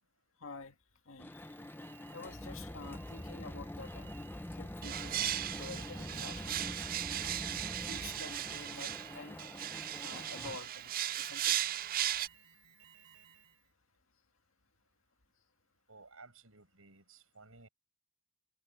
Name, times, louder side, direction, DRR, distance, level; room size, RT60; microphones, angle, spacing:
voice 1, 0.4-0.8 1.1-1.4 2.1-4.2 4.6-5.1 5.6-6.7 7.6-9.4 10.0-11.6, left 3 dB, 75° left, 2.1 m, -49 dB
sound 1, 1.2-10.6, left 1 dB, 10° left, 0.7 m, -45 dB
Alarm, 1.3-13.7, right 9 dB, 70° right, 3.8 m, -61 dB
sound 2, 4.8-12.3, right 12 dB, 45° right, 0.4 m, -37 dB
voice 2, 15.9-17.7, right 3 dB, 90° right, 6.9 m, -57 dB
head